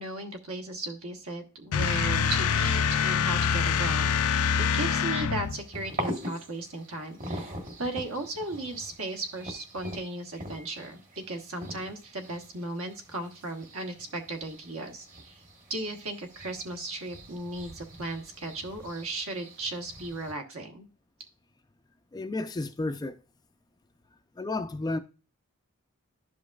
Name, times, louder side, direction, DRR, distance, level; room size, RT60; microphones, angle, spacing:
voice 1, 0.0-11.0 11.3-15.4 15.7-20.9, right 2 dB, 65° right, 1.2 m, -36 dB
sound 1, 1.7-5.6, left 6 dB, 80° left, 0.4 m, -25 dB
sound 2, 5.4-20.3, equal, 40° right, 1.3 m, -42 dB
voice 2, 22.1-23.2 24.4-25.0, left 2 dB, 20° left, 0.3 m, -32 dB
12.0 x 5.1 x 2.3 m
head